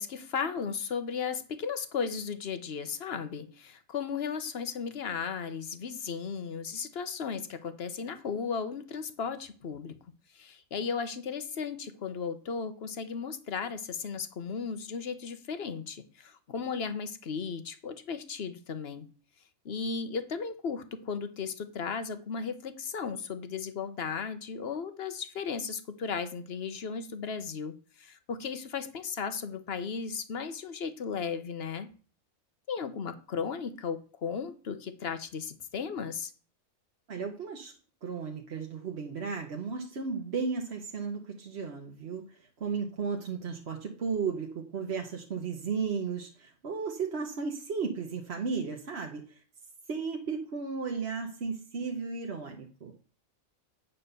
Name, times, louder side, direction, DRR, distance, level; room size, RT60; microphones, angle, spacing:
voice 1, 0.0-9.9 10.3-19.1 19.6-31.9 32.7-36.3, left 6 dB, 50° left, 10 dB, 1.1 m, -35 dB
voice 2, 37.1-37.7 38.0-49.4 49.9-52.9, right 5 dB, 55° right, 1 dB, 1.2 m, -34 dB
9.2 x 4.3 x 6.7 m, 0.39 s
omnidirectional pair, 1.4 m